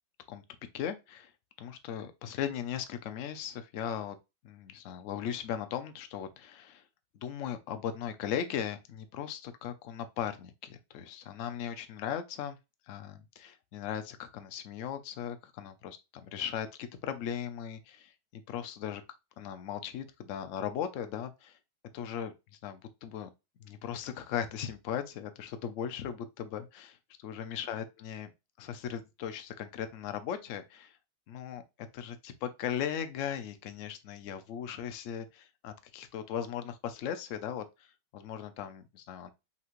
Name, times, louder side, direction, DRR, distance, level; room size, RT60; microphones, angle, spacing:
voice 1, 0.7-1.3 1.6-4.2 4.4-6.8 7.1-12.6 12.9-19.0 19.4-21.6 21.9-22.3 22.6-23.3 23.6-28.3 28.6-31.0 31.3-31.6 31.9-39.3, left 9 dB, 65° left, 0.7 m, -38 dB
5.7 x 3.1 x 2.5 m
omnidirectional pair, 2.0 m